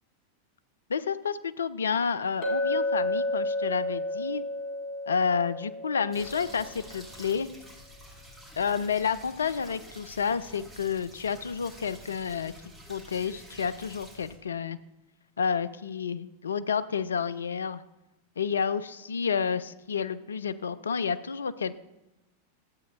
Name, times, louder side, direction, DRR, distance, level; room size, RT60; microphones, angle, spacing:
voice 1, 0.9-4.4 5.1-7.5 8.6-12.5 12.9-14.8 15.4-17.8 18.4-21.7, left 6 dB, 70° left, 14 dB, 0.3 m, -30 dB
Chink clink, 2.4-6.6, left 1 dB, 45° left, 2.1 m, -31 dB
sound 1, 6.1-14.4, equal, 10° right, 2.5 m, -49 dB
13.0 x 8.1 x 2.4 m, 0.95 s
figure-of-eight pair, 90°, 0 cm